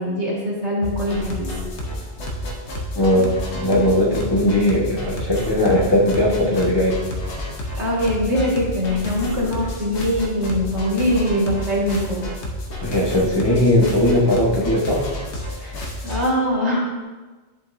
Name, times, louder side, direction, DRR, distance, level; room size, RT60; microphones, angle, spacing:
voice 1, 0.0-1.5 7.8-12.2 16.0-17.0, equal, 85° right, -5 dB, 2.2 m, -22 dB
sound 1, 0.8-16.3, left 1 dB, 85° left, 1.3 m, -30 dB
voice 2, 3.0-7.0 12.8-15.0 15.6-15.7, left 1 dB, 25° left, -5 dB, 1.1 m, -18 dB
10.5 x 5.2 x 2.6 m, 1.3 s
omnidirectional pair, 1.1 m